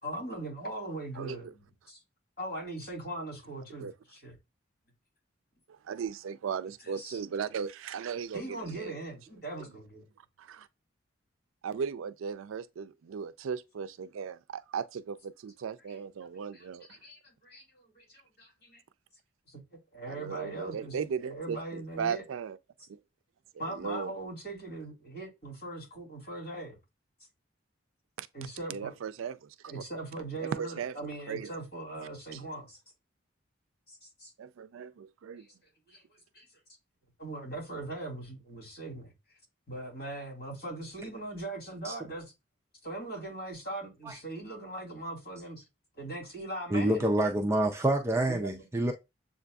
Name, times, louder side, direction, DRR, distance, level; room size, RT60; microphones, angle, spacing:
voice 1, 0.0-2.0 2.4-4.3 7.0-7.2 8.3-10.1 16.5-16.7 17.0-18.8 19.5-19.6 19.9-22.2 23.6-26.8 28.3-28.9 29.7-32.8 33.9-34.3 35.9-36.5 37.2-39.1 39.7-42.3 42.8-45.6 46.0-47.1 48.3-48.6, right 2 dB, 50° left, 2.7 m, -40 dB
voice 2, 1.2-1.5 3.8-3.9 5.7-9.0 10.4-10.7 11.6-17.0 20.1-22.6 22.9-23.0 23.5-24.2 28.2-28.3 28.7-29.8 30.4-31.5 32.0-32.4 34.4-35.5, right 6 dB, 85° right, 0.4 m, -37 dB
voice 3, 46.7-48.9, right 1 dB, 15° right, 0.4 m, -27 dB
7.3 x 2.5 x 2.3 m
head